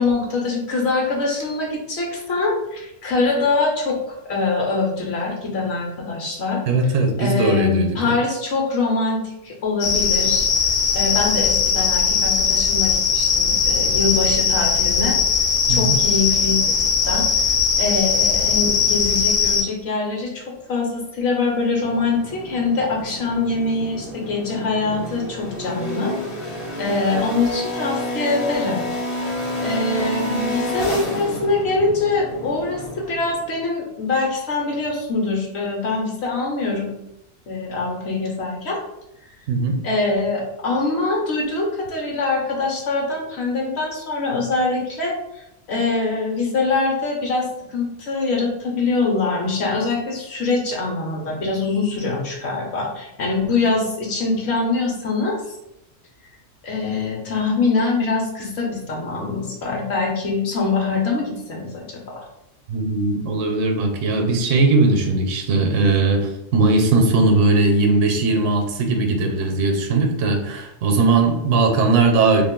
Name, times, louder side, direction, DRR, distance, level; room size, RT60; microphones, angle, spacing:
voice 1, 0.0-6.6 7.2-10.5 10.9-15.2 15.7-17.5 17.8-20.4 20.7-26.1 26.8-28.8 29.1-29.3 29.6-32.8 33.1-36.9 37.5-38.8 39.8-55.4 56.6-62.2, left 3 dB, 60° left, -1 dB, 1.0 m, -23 dB
voice 2, 6.7-8.2 15.7-16.0 39.5-39.8 62.7-72.4, right 3 dB, 75° right, 4 dB, 0.9 m, -19 dB
sound 1, 9.8-19.6, left 6 dB, 85° left, 1.0 m, -19 dB
sound 2, 21.7-33.5, left 1 dB, 40° left, 0.6 m, -29 dB
2.6 x 2.4 x 3.6 m, 0.84 s
omnidirectional pair, 1.3 m